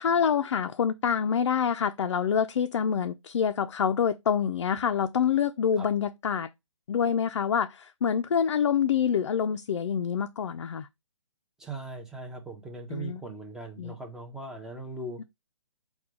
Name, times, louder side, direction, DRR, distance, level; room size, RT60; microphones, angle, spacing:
voice 1, 0.0-6.5 6.9-10.9 12.9-13.2 13.8-13.9 15.2-15.3, left 7 dB, 65° left, 0.4 m, -26 dB
voice 2, 11.6-15.2, right 2 dB, 5° right, 0.7 m, -39 dB
4.5 x 2.3 x 4.7 m
hypercardioid pair, 140°, 16 cm